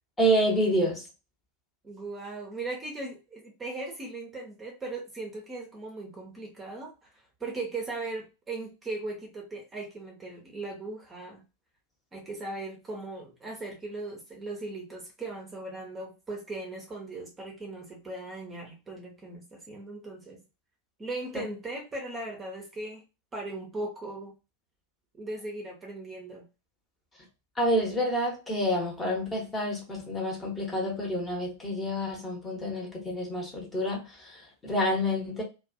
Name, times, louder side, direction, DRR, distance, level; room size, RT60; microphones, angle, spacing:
voice 1, 0.2-1.0 27.6-35.4, equal, 15° left, 0.9 m, -28 dB
voice 2, 1.8-7.1 7.4-11.4 12.1-20.4 21.0-23.0 23.3-24.3 25.2-26.5, right 2 dB, 15° right, 0.7 m, -38 dB
2.5 x 2.3 x 2.5 m
figure-of-eight pair, 90°, 0 cm